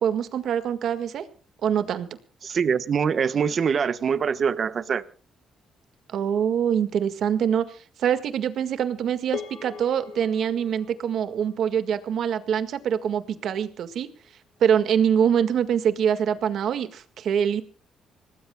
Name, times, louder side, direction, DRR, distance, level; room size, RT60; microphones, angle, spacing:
voice 1, 0.0-1.2 1.6-2.1 6.1-14.1 14.6-17.6, right 8 dB, 70° right, 10 dB, 1.8 m, -24 dB
voice 2, 2.4-5.0, right 6 dB, 50° right, 12 dB, 1.2 m, -24 dB
sound 1, 9.3-13.8, left 7 dB, 65° left, 3.3 m, -42 dB
26.5 x 19.0 x 2.3 m, 0.38 s
cardioid pair, 90°, 0 cm